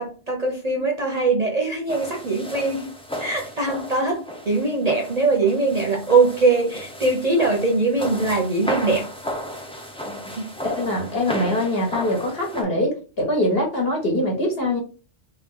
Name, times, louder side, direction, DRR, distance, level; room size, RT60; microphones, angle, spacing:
voice 1, 0.0-2.9 3.2-9.1, right 3 dB, 35° right, 0 dB, 0.8 m, -21 dB
sound 1, 1.9-12.6, equal, 10° left, 0.3 m, -34 dB
voice 2, 10.6-14.8, left 1 dB, 50° left, 1 dB, 1.4 m, -23 dB
3.2 x 3.1 x 3.7 m, 0.35 s
omnidirectional pair, 1.3 m